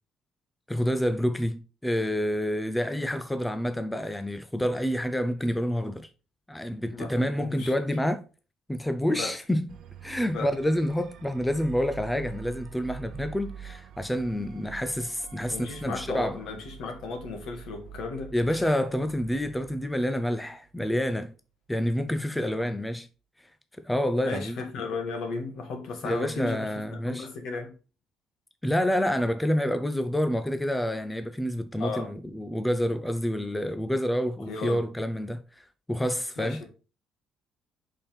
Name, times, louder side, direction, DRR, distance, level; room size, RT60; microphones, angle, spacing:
voice 1, 0.7-6.1 6.5-8.2 8.7-9.7 10.0-16.4 18.3-21.3 21.7-23.1 23.4-23.5 23.8-24.6 26.0-27.3 28.6-36.6, equal, 5° left, 0.5 m, -28 dB
voice 2, 6.9-7.7 9.1-9.3 10.3-10.5 15.5-18.7 22.3-22.7 24.2-27.7 31.8-32.1 34.5-34.8 36.4-36.6, left 4 dB, 65° left, 2.0 m, -35 dB
sound 1, 9.7-20.7, right 8 dB, 65° right, 0.8 m, -46 dB
5.3 x 4.3 x 5.2 m
cardioid pair, 135°, 0 cm